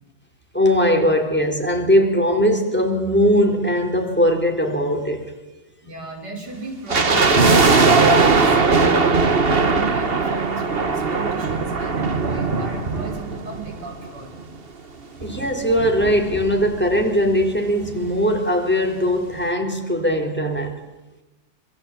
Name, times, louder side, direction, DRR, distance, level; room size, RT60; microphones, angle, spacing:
voice 1, 0.5-5.3 15.2-20.8, equal, 5° left, 3.6 m, -20 dB
voice 2, 5.8-14.3, right 2 dB, 75° right, 6.2 m, -35 dB
sound 1, 6.9-14.2 14.4-14.5 15.2-17.0 17.3-17.4 17.6-17.9 18.3-18.4, right 4 dB, 35° right, 1.6 m, -19 dB
26.5 x 22.5 x 8.8 m
omnidirectional pair, 1.8 m